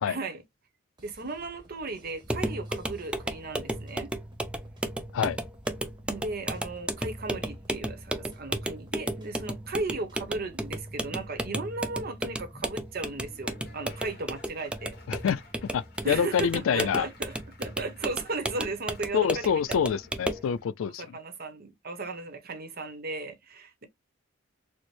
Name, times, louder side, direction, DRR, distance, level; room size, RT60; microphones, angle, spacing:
voice 1, 0.1-0.4 1.0-4.1 6.0-14.9 16.0-19.8 21.0-23.9, right 3 dB, 50° right, 0.8 m, -36 dB
sound 1, 1.0-11.7, right 1 dB, 20° right, 0.9 m, -56 dB
sound 2, 2.2-20.5, right 1 dB, 5° right, 0.4 m, -34 dB
Laughter / Applause, 12.8-20.7, left 3 dB, 55° left, 1.4 m, -56 dB
voice 2, 15.1-17.1 19.1-21.2, left 7 dB, 85° left, 0.4 m, -27 dB
4.3 x 2.1 x 3.1 m
head